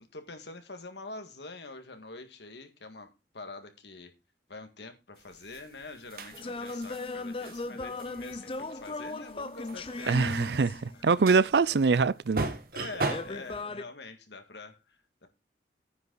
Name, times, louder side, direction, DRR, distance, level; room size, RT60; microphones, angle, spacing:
voice 1, 0.0-4.1 4.5-10.1 10.9-11.3 12.7-15.3, left 3 dB, 75° left, 1.9 m, -45 dB
sound 1, 5.3-13.5, right 3 dB, 55° right, 1.4 m, -38 dB
sound 2, 6.3-11.0 13.0-13.8, left 3 dB, 30° left, 0.6 m, -37 dB
voice 2, 10.1-12.5, right 4 dB, 70° right, 0.5 m, -24 dB
9.5 x 8.2 x 3.9 m
head